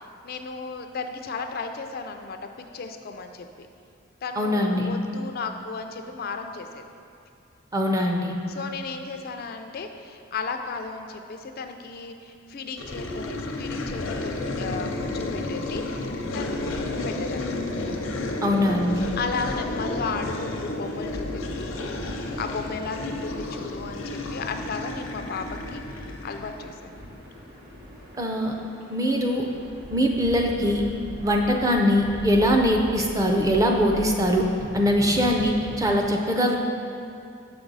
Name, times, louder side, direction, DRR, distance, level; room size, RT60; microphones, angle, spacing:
voice 1, 0.2-3.7 4.2-6.9 8.5-17.6 19.2-21.7 22.4-27.3, left 4 dB, 50° left, 6 dB, 0.4 m, -35 dB
voice 2, 4.4-4.9 7.7-8.3 18.4-19.1 28.2-28.5 28.9-29.4 29.9-30.8 31.2-34.5 34.7-36.6, equal, 15° right, 1 dB, 0.5 m, -22 dB
sound 1, 12.8-26.6, left 2 dB, 80° left, 0.7 m, -32 dB
sound 2, 17.1-36.0, equal, 50° right, 1.4 m, -41 dB
6.7 x 6.0 x 3.9 m, 2.5 s
head